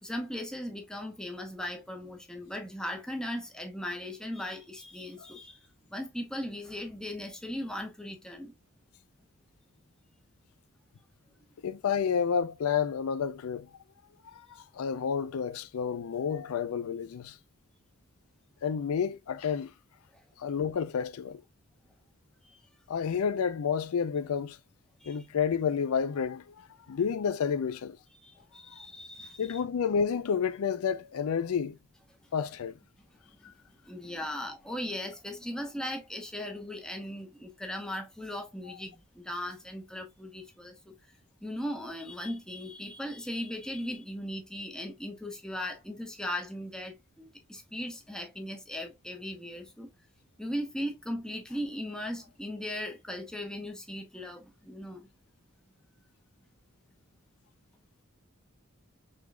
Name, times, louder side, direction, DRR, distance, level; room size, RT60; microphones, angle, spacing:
voice 1, 0.0-5.6 5.9-8.5 20.1-20.2 22.4-22.6 25.0-25.2 28.2-29.6 33.9-40.9 41.4-49.9 50.4-55.1, left 1 dB, 5° left, 0.9 m, -38 dB
voice 2, 11.6-13.7 14.3-14.5 14.7-17.4 18.6-19.7 20.4-21.4 22.9-24.6 25.1-28.0 29.4-31.8 32.3-32.8 33.4-33.5, left 7 dB, 85° left, 0.4 m, -30 dB
5.0 x 3.8 x 2.2 m
head